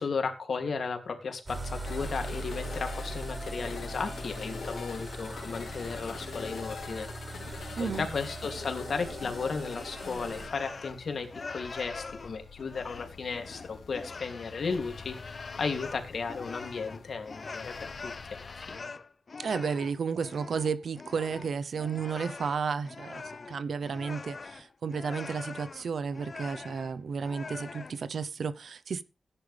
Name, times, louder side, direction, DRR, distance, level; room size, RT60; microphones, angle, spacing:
voice 1, 0.0-7.1 7.8-18.9, left 5 dB, 65° left, 2.9 m, -35 dB
sound 1, 1.5-10.5, right 1 dB, 25° right, 6.3 m, -40 dB
sound 2, 1.9-18.8, left 5 dB, 90° left, 1.9 m, -45 dB
sound 3, 9.7-11.0 11.3-28.0, left 4 dB, 45° left, 0.8 m, -43 dB
voice 2, 19.4-29.0, right 6 dB, 75° right, 0.9 m, -33 dB
17.0 x 10.0 x 3.5 m
wide cardioid pair, 105°, 0 cm